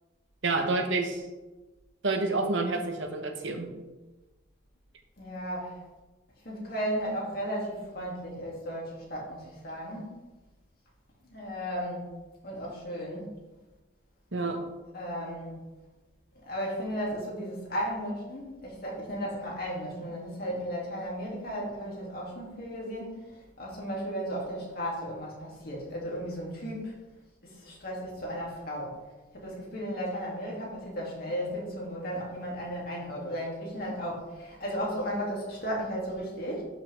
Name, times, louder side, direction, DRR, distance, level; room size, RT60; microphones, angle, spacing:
voice 1, 0.4-1.2 2.0-3.7 14.3-14.6, right 3 dB, 70° right, 4 dB, 1.2 m, -28 dB
voice 2, 5.2-5.8 6.4-10.1 11.2-12.1 12.4-13.3 14.9-15.5 16.4-23.2 23.6-26.9 27.4-28.9 29.3-36.6, equal, 50° left, -4 dB, 2.8 m, -35 dB
12.0 x 5.9 x 3.6 m, 1.1 s
head